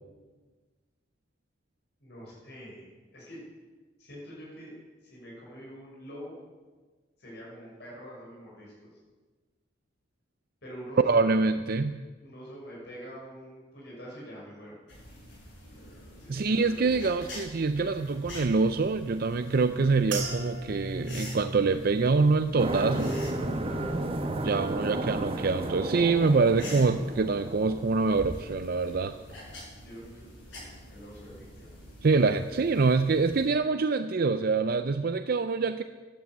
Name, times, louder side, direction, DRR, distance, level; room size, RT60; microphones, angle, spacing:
voice 1, 2.0-3.4 4.0-6.4 7.2-8.9 10.6-11.3 12.2-14.7 16.2-17.1 23.6-23.9 29.8-30.2 30.5-30.6 30.9-31.8, equal, 60° left, -5 dB, 6.1 m, -45 dB
voice 2, 11.0-12.0 16.3-23.1 24.4-29.2 32.0-35.8, right 4 dB, 50° right, 10 dB, 0.5 m, -25 dB
sound 1, 14.9-33.5, left 1 dB, 80° left, 6.9 m, -47 dB
sound 2, 20.1-24.6 25.0-25.6 26.2-26.4, right 2 dB, 70° right, 3.0 m, -39 dB
sound 3, 22.6-28.4, right 1 dB, 30° right, 1.1 m, -33 dB
13.5 x 11.0 x 8.3 m, 1.3 s
head